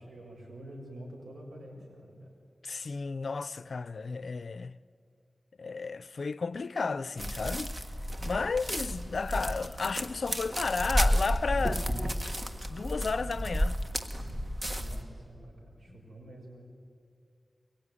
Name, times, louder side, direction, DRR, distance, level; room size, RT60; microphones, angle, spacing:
voice 1, 0.0-2.3 14.8-16.6, right 1 dB, 85° right, 7.1 m, -47 dB
voice 2, 2.6-4.8 5.6-7.7 8.2-11.9 12.7-13.8 15.9-16.0, left 4 dB, 70° left, 0.6 m, -33 dB
sound 1, 7.2-15.0, equal, 20° right, 1.6 m, -32 dB
23.0 x 22.0 x 10.0 m
wide cardioid pair, 110°, 0 cm